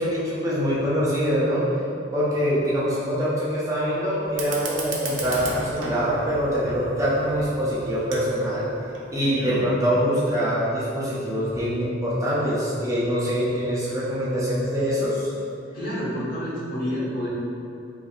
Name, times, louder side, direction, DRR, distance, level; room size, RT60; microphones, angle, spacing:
voice 1, 0.0-1.6 2.1-8.7 9.1-15.3, equal, 15° right, -8 dB, 0.4 m, -24 dB
Fire, 4.3-9.3, right 3 dB, 85° right, 0.5 m, -36 dB
voice 2, 9.2-9.6 15.7-17.3, equal, 50° left, -9 dB, 1.1 m, -29 dB
4.3 x 2.4 x 2.4 m, 2.6 s
head